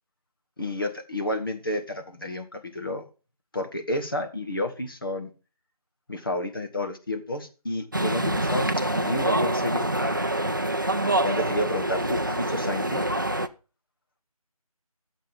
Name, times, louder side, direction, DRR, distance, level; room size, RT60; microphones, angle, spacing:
voice 1, 0.6-3.0 3.5-5.3 6.1-9.9 11.2-13.0, left 1 dB, 35° left, 5 dB, 1.3 m, -30 dB
sound 1, 7.9-13.5, right 1 dB, 35° right, 0.5 m, -26 dB
11.5 x 7.5 x 5.6 m, 0.35 s
figure-of-eight pair, 165°, 19 cm